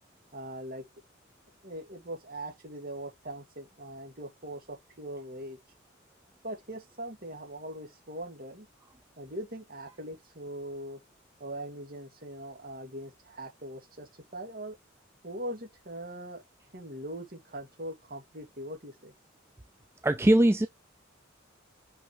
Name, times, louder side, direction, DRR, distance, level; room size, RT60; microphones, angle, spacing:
voice 1, 0.3-0.9 1.6-5.6 6.4-8.7 9.2-11.0 11.4-14.8 15.2-16.4 16.7-19.1, right 1 dB, 45° right, 2.4 m, -41 dB
voice 2, 20.0-20.7, right 1 dB, 10° right, 0.4 m, -21 dB
6.0 x 5.7 x 3.2 m
head